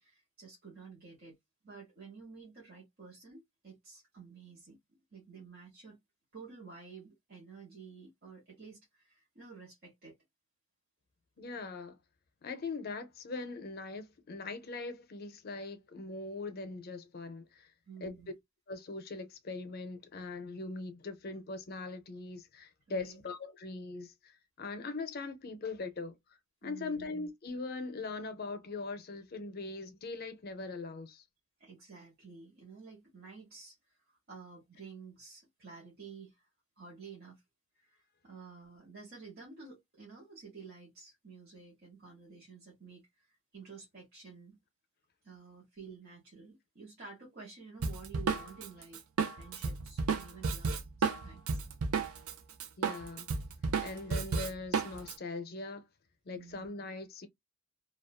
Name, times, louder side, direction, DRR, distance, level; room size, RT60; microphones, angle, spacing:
voice 1, 0.0-1.4 1.6-4.8 5.1-6.0 6.3-10.1 17.9-18.3 22.9-23.2 26.6-27.1 31.6-33.8 34.0-36.5 36.8-37.4 37.8-43.3 43.5-44.5 45.2-49.0 49.3-51.6 56.3-56.7, right 5 dB, 45° right, 0.9 m, -51 dB
voice 2, 11.4-12.0 12.4-17.7 18.0-18.1 18.7-26.2 26.6-31.2 52.8-53.3 53.8-55.8 56.3-57.3, left 3 dB, 45° left, 0.5 m, -41 dB
Drum kit, 47.8-52.3 52.6-55.1, right 5 dB, 80° right, 0.5 m, -32 dB
2.5 x 2.3 x 2.2 m
head